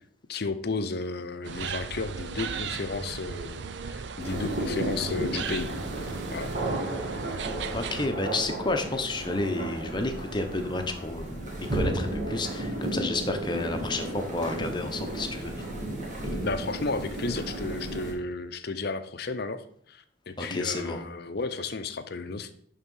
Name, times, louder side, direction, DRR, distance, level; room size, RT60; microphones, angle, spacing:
voice 1, 0.3-5.7 6.3-6.5 16.4-22.5, left 3 dB, 50° left, 10 dB, 0.6 m, -33 dB
sound 1, 1.4-8.1, right 5 dB, 60° right, 0.5 m, -36 dB
sound 2, 4.2-18.1, right 1 dB, 40° right, 1.9 m, -33 dB
voice 2, 7.7-15.5 20.4-21.0, left 2 dB, 25° left, 5 dB, 0.9 m, -31 dB
11.0 x 3.7 x 5.5 m, 0.65 s
head